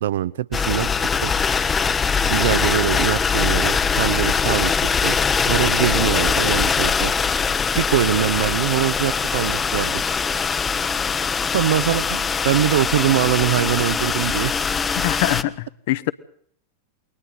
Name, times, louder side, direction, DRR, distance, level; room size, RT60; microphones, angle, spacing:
voice 1, 0.0-1.3 2.3-5.2 5.5-7.1 7.8-10.0 11.5-14.5, right 12 dB, 60° right, 0.8 m, -23 dB
sound 1, 0.5-15.4, left 5 dB, 20° left, 0.8 m, -22 dB
voice 2, 15.0-16.1, left 18 dB, 50° left, 0.9 m, -24 dB
29.0 x 22.0 x 4.2 m
figure-of-eight pair, 90°, 0 cm